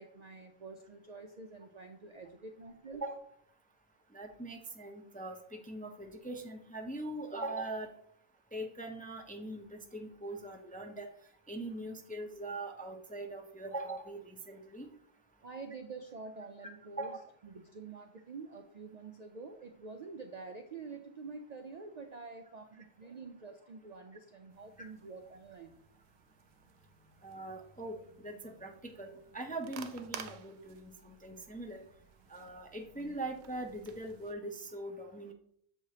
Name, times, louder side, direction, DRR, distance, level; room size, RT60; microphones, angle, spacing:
voice 1, 0.0-3.1 15.4-17.2 17.4-25.8, right 4 dB, 55° right, 5 dB, 0.4 m, -47 dB
voice 2, 4.1-7.9 8.5-11.1 11.5-14.9 17.0-17.2 27.2-31.8 32.3-35.3, right 2 dB, 10° left, 3 dB, 0.4 m, -42 dB
sound 1, 24.5-34.3, right 7 dB, 75° right, 0.8 m, -53 dB
7.3 x 4.8 x 2.8 m, 0.66 s
omnidirectional pair, 1.2 m